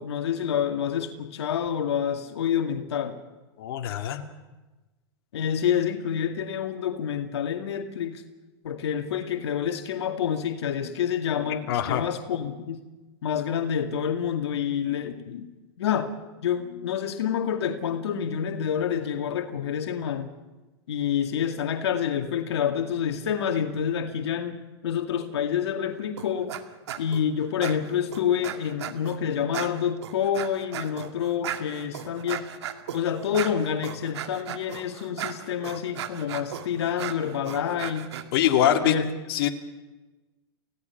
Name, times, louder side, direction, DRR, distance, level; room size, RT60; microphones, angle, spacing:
voice 1, 0.0-3.2 5.3-8.2 8.6-12.8 13.2-15.5 15.8-16.1 16.4-20.3 20.9-24.6 24.8-26.5 27.0-32.4 32.9-38.1 38.8-39.1, left 8 dB, 80° left, 3 dB, 2.2 m, -28 dB
voice 2, 3.6-4.2 11.7-12.0 38.3-38.9 39.3-39.5, left 11 dB, 60° left, 3 dB, 2.3 m, -23 dB
sound 1, 26.2-26.6 26.9-27.2 27.6-29.2 29.5-38.2, right 10 dB, 80° right, 2.1 m, -36 dB
29.5 x 17.0 x 5.9 m, 1.1 s
hypercardioid pair, 130°, 14 cm